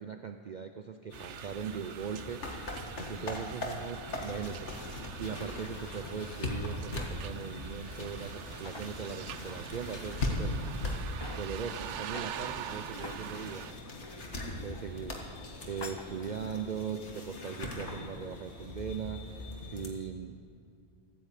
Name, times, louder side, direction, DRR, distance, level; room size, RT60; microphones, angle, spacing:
voice 1, 0.0-2.4 3.0-10.5 11.3-13.7 14.6-20.4, right 7 dB, 50° right, 7 dB, 0.6 m, -40 dB
sound 1, 1.1-19.9, left 1 dB, 90° left, 2.1 m, -40 dB
sound 2, 1.1-13.7, right 10 dB, 90° right, 0.9 m, -45 dB
sound 3, 4.1-16.7, left 3 dB, 25° left, 0.7 m, -49 dB
15.5 x 9.5 x 8.4 m, 2.4 s
omnidirectional pair, 1.2 m